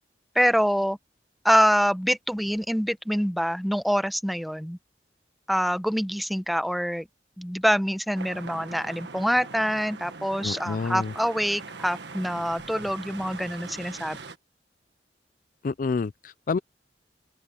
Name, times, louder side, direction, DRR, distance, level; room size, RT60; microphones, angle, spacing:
voice 1, 0.3-1.0 1.4-4.8 5.5-7.1 7.4-14.2, equal, ahead, 0.8 m, -25 dB
sound 1, 8.1-14.4, right 4 dB, 85° right, 1.5 m, -42 dB
voice 2, 10.4-11.1 15.6-16.6, left 4 dB, 50° left, 0.4 m, -28 dB
open air
head